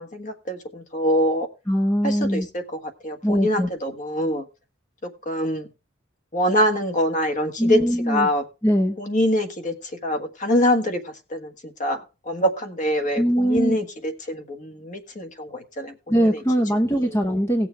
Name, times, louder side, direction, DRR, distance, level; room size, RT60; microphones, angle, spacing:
voice 1, 0.0-1.5 2.0-4.5 5.2-5.7 6.3-7.8 8.1-8.4 9.0-16.4 16.9-17.2, equal, 35° left, 7 dB, 1.5 m, -25 dB
voice 2, 1.7-2.5 3.2-3.7 7.6-8.3 8.6-9.0 13.2-13.8 16.1-17.7, equal, 15° left, 4 dB, 0.8 m, -21 dB
18.0 x 7.0 x 3.3 m, 0.29 s
head